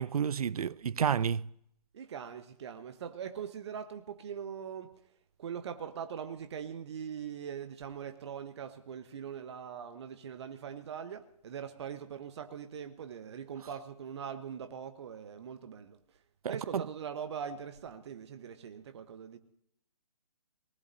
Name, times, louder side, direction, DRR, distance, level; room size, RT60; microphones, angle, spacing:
voice 1, 0.0-1.5 16.4-16.9, right 7 dB, 65° right, 0.5 m, -30 dB
voice 2, 1.9-4.9 5.4-16.0 16.5-19.4, right 7 dB, 40° right, 1.2 m, -42 dB
24.0 x 19.5 x 2.7 m
figure-of-eight pair, 150°, 21 cm